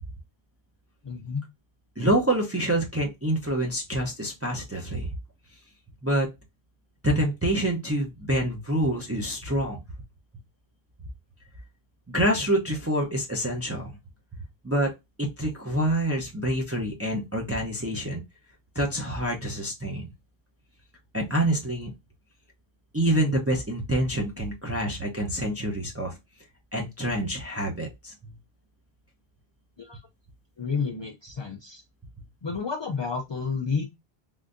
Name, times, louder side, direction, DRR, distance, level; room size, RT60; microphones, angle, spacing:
voice 1, 1.0-1.5 29.8-30.0 30.6-31.8 32.4-33.8, left 5 dB, 50° left, 3 dB, 0.3 m, -30 dB
voice 2, 2.0-5.1 6.0-6.3 7.0-9.8 12.1-14.0 14.6-14.9 15.2-18.2 18.7-20.1 21.1-21.9 22.9-26.1 26.7-28.3, right 1 dB, 20° right, 0 dB, 0.5 m, -26 dB
3.6 x 2.6 x 2.5 m, 0.21 s
omnidirectional pair, 1.0 m